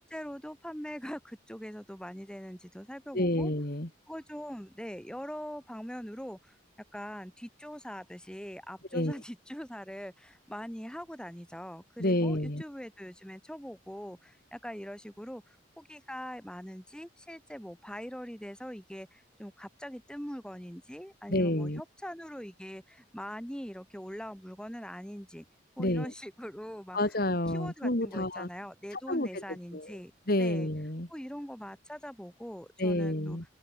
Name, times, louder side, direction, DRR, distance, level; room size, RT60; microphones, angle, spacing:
voice 1, 0.0-3.5 4.1-6.6 6.9-25.4 25.8-27.2 27.5-30.1 30.4-30.7 31.1-33.4, equal, 5° left, 7.2 m, -42 dB
voice 2, 3.1-3.9 8.9-9.2 12.0-12.6 21.3-21.8 25.8-26.1 26.9-28.5 28.9-29.4 29.7-30.0 30.3-31.1 32.8-33.4, left 1 dB, 50° left, 3.2 m, -29 dB
head